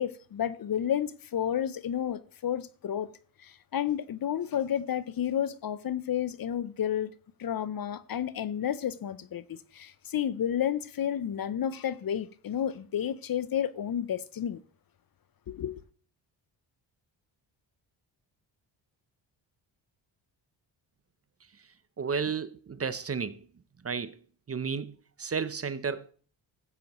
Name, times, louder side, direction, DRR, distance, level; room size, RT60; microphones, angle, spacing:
voice 1, 0.0-3.1 3.4-7.1 7.4-14.6 15.5-15.8, left 9 dB, 45° left, 0.7 m, -31 dB
voice 2, 22.0-23.4 23.8-24.2 24.5-26.1, right 5 dB, 30° right, 0.7 m, -32 dB
15.0 x 7.8 x 3.0 m
supercardioid pair, 60°, 48 cm